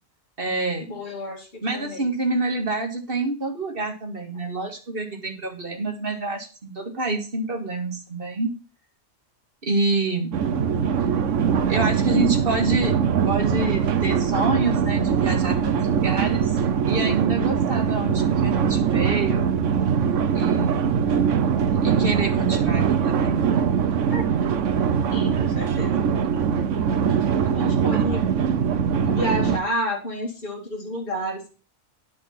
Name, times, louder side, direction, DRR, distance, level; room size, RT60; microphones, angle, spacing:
voice 1, 0.4-1.0 1.6-8.6 9.6-10.4 11.7-13.0 13.2-16.6 16.9-19.5 20.3-20.8 21.8-23.5, right 2 dB, 50° right, 3 dB, 2.2 m, -27 dB
voice 2, 0.9-2.1 24.1-24.2 25.1-26.1 27.4-28.3 29.0-31.5, equal, 50° left, -3 dB, 2.7 m, -30 dB
sound 1, 10.3-29.6, right 7 dB, 85° right, 1.2 m, -22 dB
10.5 x 5.4 x 5.9 m, 0.34 s
omnidirectional pair, 1.2 m